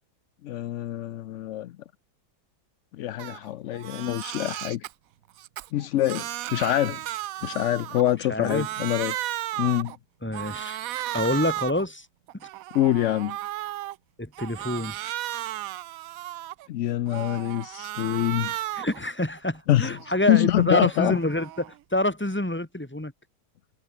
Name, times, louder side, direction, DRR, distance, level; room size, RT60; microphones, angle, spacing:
voice 1, 0.4-1.7 3.0-4.8 5.7-7.0 7.4-9.2 9.6-9.9 12.7-13.4 16.7-18.5 19.7-19.9 20.3-21.2, left 13 dB, 80° left, 0.6 m, -25 dB
Crying sobbing, 3.2-3.4 3.7-4.9 5.4-8.2 8.4-10.0 10.3-11.9 12.3-13.9 14.3-16.7 17.1-19.0 19.4-21.8, right 14 dB, 70° right, 0.9 m, -35 dB
voice 2, 8.3-8.7 10.2-10.8 11.1-12.1 14.2-15.0 18.7-23.1, left 1 dB, 5° left, 2.2 m, -27 dB
omnidirectional pair, 1.8 m